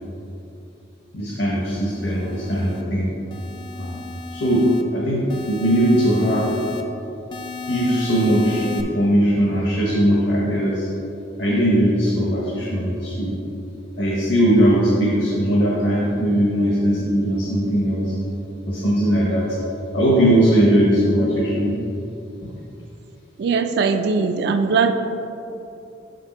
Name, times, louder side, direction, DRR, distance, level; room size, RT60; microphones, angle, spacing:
voice 1, 1.1-3.1 3.8-4.0 4.3-6.5 7.7-10.9 11.4-13.3 14.0-18.1 18.7-19.5 19.9-21.8, equal, 60° left, -5 dB, 1.0 m, -19 dB
sound 1, 1.7-2.8 3.3-4.8 5.3-6.8 7.3-8.8, left 3 dB, 25° left, 0.3 m, -34 dB
voice 2, 23.4-24.9, right 5 dB, 55° right, 8 dB, 0.3 m, -20 dB
6.5 x 5.1 x 4.2 m, 2.9 s
head